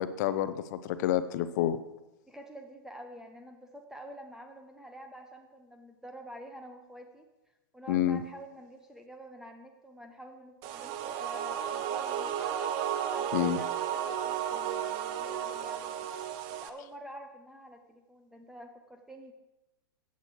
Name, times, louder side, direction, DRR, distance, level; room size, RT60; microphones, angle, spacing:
voice 1, 0.0-1.8 7.9-8.2 13.3-13.6, left 11 dB, 50° left, 13 dB, 0.6 m, -28 dB
voice 2, 2.3-7.3 7.7-12.7 13.1-16.1 16.6-19.3, right 1 dB, 5° right, 4 dB, 0.8 m, -48 dB
sound 1, 10.6-16.7, right 9 dB, 40° right, 0.7 m, -33 dB
14.0 x 8.3 x 3.1 m, 1.0 s
hypercardioid pair, 110°, 12 cm